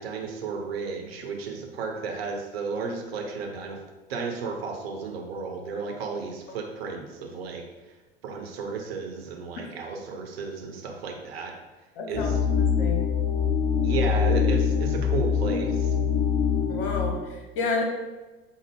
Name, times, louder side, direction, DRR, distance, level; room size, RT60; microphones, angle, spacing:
voice 1, 0.0-3.8 4.1-7.6 8.2-11.5 12.1-12.3 13.8-15.9, right 4 dB, 70° right, 2 dB, 0.7 m, -33 dB
voice 2, 12.0-12.3 12.6-13.0 16.7-17.8, left 3 dB, 55° left, 0 dB, 0.9 m, -30 dB
sound 1, 12.1-17.1, left 7 dB, 25° left, 0.7 m, -24 dB
5.0 x 2.0 x 3.4 m, 1.2 s
figure-of-eight pair, 75°, 32 cm